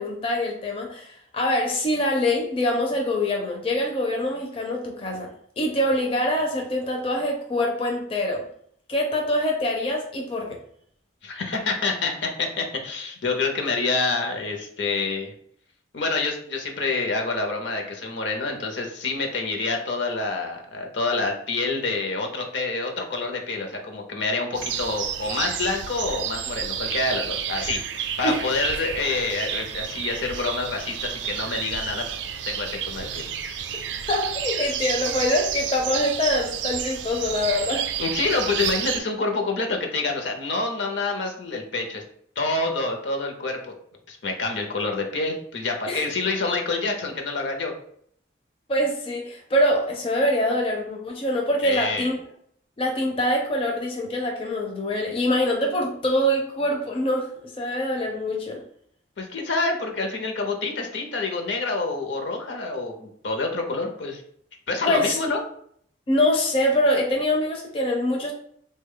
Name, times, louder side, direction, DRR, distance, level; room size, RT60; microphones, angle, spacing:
voice 1, 0.0-5.3 5.6-8.5 8.9-10.6 28.2-28.4 34.1-37.9 45.9-46.1 48.7-52.2 52.8-57.3 57.6-58.6 64.8-65.2 66.1-68.3, left 1 dB, 30° left, 0 dB, 0.4 m, -24 dB
voice 2, 11.2-15.3 15.9-32.1 32.5-33.2 38.0-42.0 42.4-43.7 44.1-47.7 51.6-52.1 59.2-64.2 64.7-65.4, left 3 dB, 75° left, 2 dB, 0.6 m, -27 dB
sound 1, 24.5-39.0, right 9 dB, 70° right, 0.3 m, -30 dB
3.3 x 2.2 x 3.6 m, 0.65 s
head